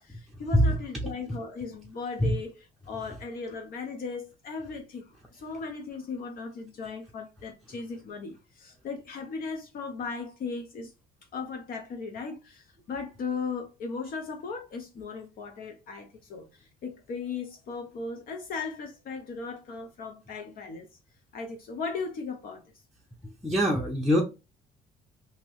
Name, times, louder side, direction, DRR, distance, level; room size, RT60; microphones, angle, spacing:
voice 1, 0.0-2.5 2.8-10.9 11.3-20.9 21.3-22.6, left 4 dB, 60° left, 0.7 m, -37 dB
voice 2, 23.4-24.2, equal, ahead, 0.6 m, -23 dB
2.9 x 2.7 x 3.0 m
cardioid pair, 110°, 17 cm